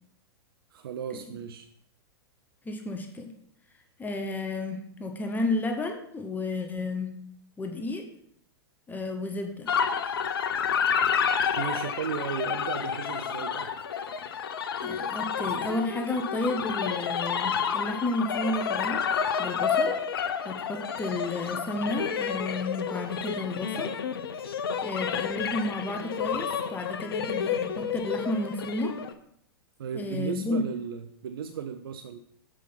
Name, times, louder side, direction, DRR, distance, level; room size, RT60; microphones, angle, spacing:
voice 1, 0.7-1.7 11.6-13.7 29.8-32.2, right 7 dB, 60° right, 9 dB, 0.5 m, -35 dB
voice 2, 2.6-3.3 4.0-7.1 7.6-8.1 8.9-9.7 14.8-19.1 19.4-19.9 20.4-24.0 24.8-29.0 29.9-30.6, left 2 dB, 15° left, 4 dB, 0.9 m, -32 dB
sound 1, 9.7-29.1, left 7 dB, 65° left, 0.8 m, -30 dB
7.6 x 5.0 x 5.6 m, 0.71 s
figure-of-eight pair, 100°, 13 cm